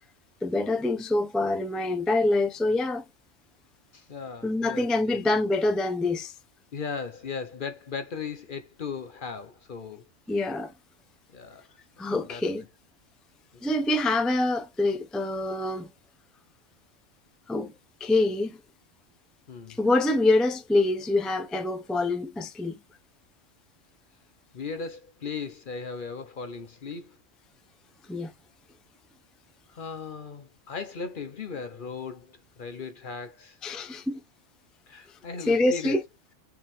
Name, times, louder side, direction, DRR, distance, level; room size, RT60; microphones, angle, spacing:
voice 1, 0.4-3.0 4.4-6.3 10.3-10.7 12.0-12.6 13.6-15.9 17.5-17.7 18.0-18.6 19.8-22.8 28.1-28.3 33.6-34.2 35.5-36.0, left 2 dB, ahead, 0.4 m, -25 dB
voice 2, 3.9-5.2 6.7-10.0 11.3-11.7 12.3-12.4 13.5-13.6 19.5-19.8 24.5-27.2 29.7-34.0 34.9-36.0, left 5 dB, 50° left, 0.7 m, -37 dB
4.7 x 3.7 x 3.0 m
omnidirectional pair, 1.3 m